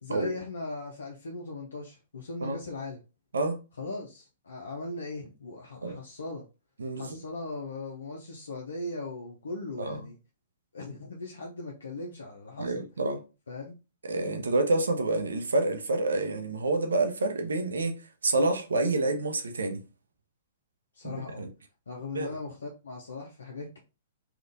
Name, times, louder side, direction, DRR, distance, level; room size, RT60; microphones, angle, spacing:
voice 1, 0.0-3.0 3.8-6.4 6.9-10.2 10.7-12.8 13.5-13.8 20.9-21.4 21.9-23.8, left 2 dB, 85° left, 0.6 m, -39 dB
voice 2, 6.8-7.2 9.8-10.0 12.6-13.2 14.1-17.9 18.2-19.8 21.0-21.5 22.1-22.3, right 2 dB, 85° right, 0.6 m, -28 dB
3.6 x 2.4 x 2.5 m
hypercardioid pair, 125°, 0 cm